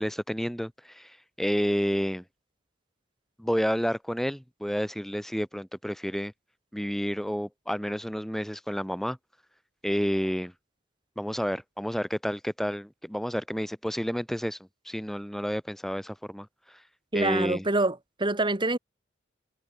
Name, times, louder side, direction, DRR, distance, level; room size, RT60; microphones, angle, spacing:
voice 1, 0.0-2.2 3.4-6.3 6.7-9.2 9.8-10.5 11.2-14.6 14.8-16.8 17.1-17.7, equal, ahead, 3.1 m, -30 dB
voice 2, 17.1-18.8, right 2 dB, 25° right, 1.9 m, -26 dB
head